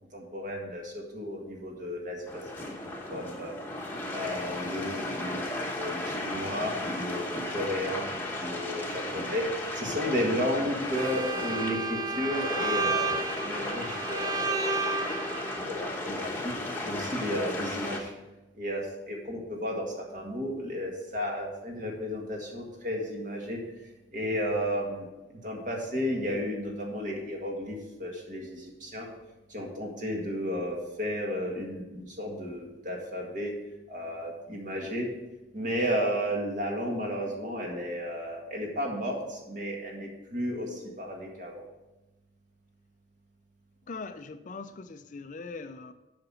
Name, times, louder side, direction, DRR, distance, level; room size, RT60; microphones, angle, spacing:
voice 1, 0.1-2.7 3.1-3.5 4.1-8.1 8.4-13.1 13.4-14.6 15.6-16.5 16.8-18.1 18.6-23.6 24.1-29.1 29.5-33.5 33.9-35.1 35.5-41.6, equal, 45° right, -1 dB, 1.9 m, -33 dB
sound 1, 2.3-18.0, left 1 dB, 10° left, 1.1 m, -35 dB
Bowed string instrument, 10.9-15.6, right 3 dB, 20° right, 0.5 m, -31 dB
voice 2, 43.9-45.9, left 4 dB, 40° left, 10 dB, 0.4 m, -41 dB
7.7 x 5.9 x 6.3 m, 1.0 s
head